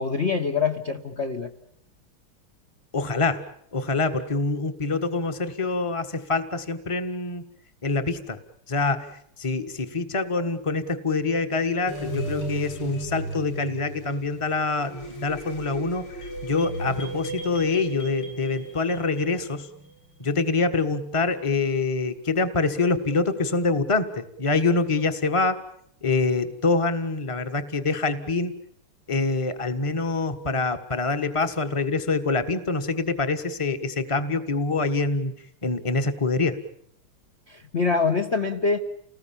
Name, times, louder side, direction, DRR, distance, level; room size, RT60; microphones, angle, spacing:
voice 1, 0.0-1.5 37.5-38.8, left 4 dB, 35° left, 4 dB, 1.3 m, -25 dB
voice 2, 2.9-3.5 3.7-7.5 7.8-8.4 8.7-9.1 9.4-19.7 20.2-25.6 26.0-28.6 29.1-35.3 35.6-36.6, left 3 dB, 15° left, 9 dB, 1.4 m, -25 dB
sound 1, 11.9-19.9, right 1 dB, 70° left, 7.3 m, -35 dB
29.5 x 20.0 x 7.3 m, 0.68 s
omnidirectional pair, 2.4 m